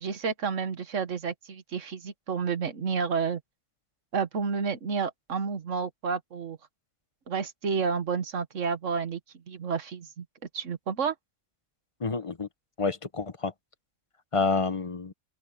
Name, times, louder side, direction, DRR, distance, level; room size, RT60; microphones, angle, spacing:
voice 1, 0.0-3.4 4.1-6.6 7.3-9.2 9.5-10.3 10.5-11.1, right 5 dB, 60° right, 1.7 m, -30 dB
voice 2, 12.0-12.5 12.8-13.5 14.3-15.1, left 4 dB, 25° left, 1.0 m, -28 dB
open air
omnidirectional pair, 1.5 m